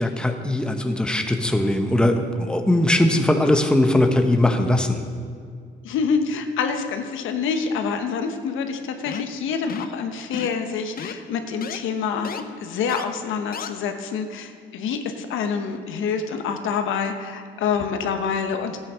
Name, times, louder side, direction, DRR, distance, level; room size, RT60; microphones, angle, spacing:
voice 1, 0.0-5.0, left 1 dB, 5° left, 5 dB, 1.1 m, -20 dB
voice 2, 5.8-12.3 12.6-18.8, left 6 dB, 85° left, 7 dB, 1.1 m, -26 dB
sound 1, 9.1-9.4 9.7-10.0 10.3-10.6 11.0-11.1 11.6-11.8 12.2-12.4 12.9-13.0 13.5-13.7, left 7 dB, 50° left, 0.8 m, -33 dB
12.5 x 9.0 x 6.2 m, 2.1 s
cardioid pair, 90°, 20 cm